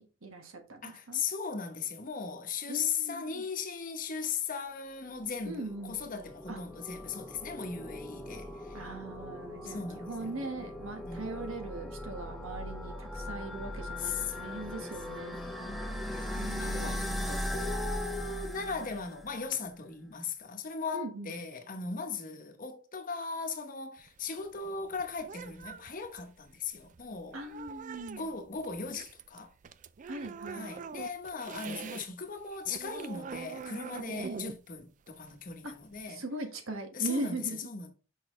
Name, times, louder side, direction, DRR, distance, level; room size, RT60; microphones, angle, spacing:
voice 1, 0.2-1.2 2.7-3.4 5.4-6.0 6.5-6.6 8.7-15.4 16.4-17.4 20.9-21.4 27.3-28.3 30.0-30.7 34.2-34.4 35.6-35.7 36.1-37.6, right 2 dB, 85° right, 1.4 m, -40 dB
voice 2, 0.8-8.8 9.6-10.5 11.0-11.5 13.7-27.4 28.2-29.5 30.5-36.2 36.9-37.9, left 5 dB, 40° left, 1.0 m, -38 dB
sound 1, 5.2-19.4, left 1 dB, ahead, 0.7 m, -39 dB
sound 2, 24.0-32.1 32.4-36.1, right 5 dB, 40° right, 0.3 m, -45 dB
6.2 x 5.6 x 3.1 m
head